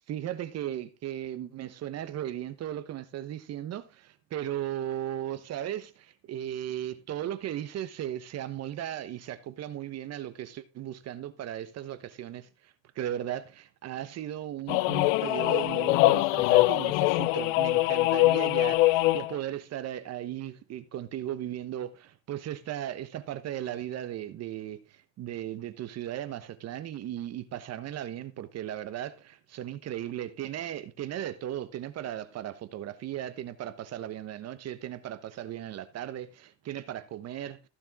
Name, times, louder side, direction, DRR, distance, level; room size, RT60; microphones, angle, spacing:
voice 1, 0.0-37.7, right 11 dB, 40° right, 1.2 m, -36 dB
sound 1, 14.7-19.4, left 19 dB, 80° left, 0.7 m, -23 dB
15.5 x 6.9 x 3.6 m
cardioid pair, 130°, 38 cm